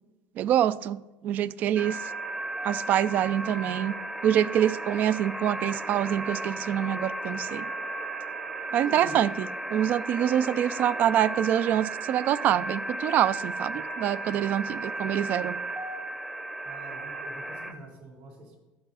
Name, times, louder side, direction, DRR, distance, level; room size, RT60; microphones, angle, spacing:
voice 1, 0.4-2.0 2.6-3.9 4.2-7.7 8.7-15.6, right 11 dB, 50° right, 18 dB, 0.4 m, -26 dB
sound 1, 1.8-17.7, right 2 dB, 10° right, 0.7 m, -35 dB
voice 2, 8.9-9.2 16.6-18.6, right 2 dB, 75° right, -1 dB, 3.9 m, -45 dB
12.5 x 8.2 x 4.1 m, 1.1 s
cardioid pair, 130°, 4 cm